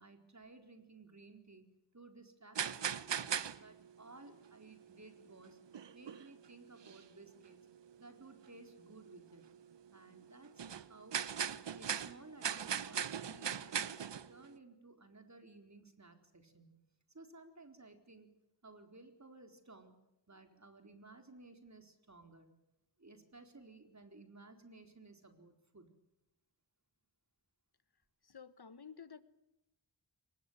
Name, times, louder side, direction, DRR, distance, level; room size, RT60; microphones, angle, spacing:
voice 1, 0.0-1.6 1.9-3.2 3.6-5.6 5.9-7.6 8.0-9.5 9.9-11.2 11.7-16.8 17.1-18.3 18.6-19.9 20.3-22.6 23.0-26.0, right 3 dB, 40° right, 6 dB, 4.3 m, -57 dB
sound 1, 2.6-4.5 5.2-5.3 5.7-6.5 6.8-7.0 7.5-7.6 7.9-8.0 8.7-9.0 9.5-9.8 10.1-14.5, right 8 dB, 75° right, 1.0 m, -39 dB
voice 2, 28.2-29.2, left 6 dB, 60° left, 14 dB, 1.5 m, -52 dB
23.5 x 21.0 x 9.4 m, 0.86 s
cardioid pair, 45°, 43 cm